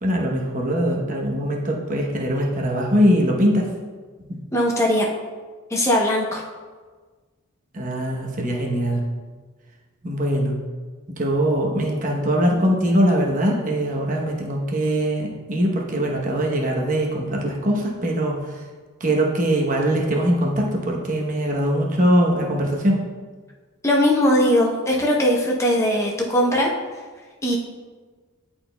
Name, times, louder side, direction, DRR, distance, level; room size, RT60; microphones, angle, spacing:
voice 1, 0.0-3.7 4.3-4.4 7.7-9.0 10.0-10.5 11.1-18.4 19.0-23.0, equal, 40° right, -1 dB, 0.9 m, -22 dB
voice 2, 4.5-5.1 5.7-6.4 23.8-26.7 27.4-27.6, equal, 15° left, -2 dB, 0.8 m, -19 dB
10.5 x 4.3 x 2.2 m, 1.4 s
head